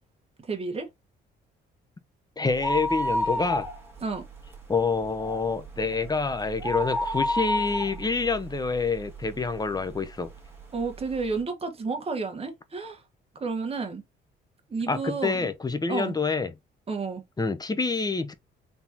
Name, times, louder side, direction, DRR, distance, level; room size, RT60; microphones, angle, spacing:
voice 1, 0.5-0.9 4.0-4.2 10.7-13.0 13.4-14.0 14.7-15.5 15.9-16.1 16.9-17.2, right 4 dB, 30° right, 1.3 m, -31 dB
voice 2, 2.4-3.7 4.7-10.3 14.9-16.5 17.4-18.3, left 4 dB, 20° left, 0.7 m, -27 dB
sound 1, 2.5-4.1 4.5-4.6 5.0-9.4 9.9-10.0 10.8-10.9 11.1-11.2, left 1 dB, 10° right, 1.8 m, -29 dB
4.2 x 3.5 x 2.7 m
cardioid pair, 90°, 20 cm